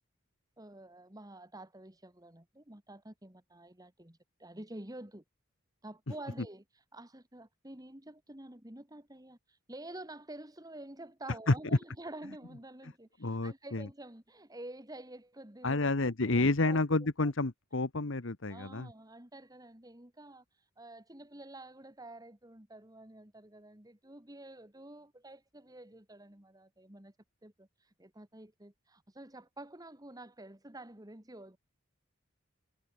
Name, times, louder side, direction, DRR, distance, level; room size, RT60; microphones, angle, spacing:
voice 1, 0.6-5.2 5.8-15.9 16.3-16.8 17.2-17.3 18.5-27.2 27.4-31.6, right 1 dB, 20° right, 2.0 m, -49 dB
voice 2, 13.2-13.9 15.6-18.9, left 2 dB, 60° left, 1.2 m, -29 dB
head